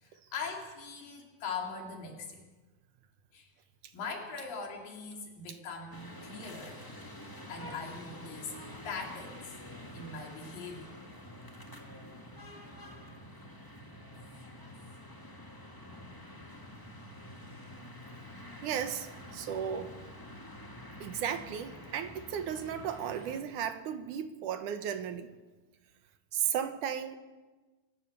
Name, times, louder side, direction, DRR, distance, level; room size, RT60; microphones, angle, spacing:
voice 1, 0.0-2.4 3.3-3.5 3.9-6.8 7.5-8.5 8.8-9.6 9.9-10.9, left 4 dB, 85° left, 4.6 m, -41 dB
sound 1, 5.9-23.4, left 1 dB, 10° left, 0.9 m, -48 dB
voice 2, 18.6-19.9 21.0-25.3 26.3-27.2, right 8 dB, 70° right, 2.5 m, -35 dB
25.5 x 15.5 x 6.8 m
omnidirectional pair, 3.9 m